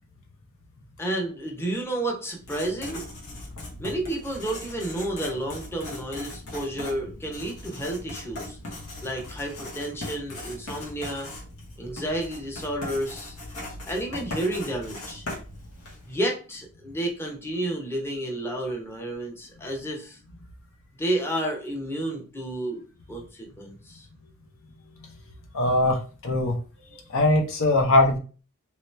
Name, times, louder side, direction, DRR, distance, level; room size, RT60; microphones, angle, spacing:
voice 1, 1.0-3.0 3.8-8.6 9.0-11.3 11.8-13.4 13.9-15.3 16.1-20.2 21.0-22.8 23.1-24.1, right 1 dB, 10° left, 0 dB, 0.7 m, -31 dB
Writing, 2.3-16.2, left 1 dB, 85° left, 1.2 m, -39 dB
voice 2, 25.5-26.5 27.1-28.2, left 2 dB, 65° left, 3 dB, 0.7 m, -21 dB
3.0 x 2.9 x 3.2 m, 0.37 s
head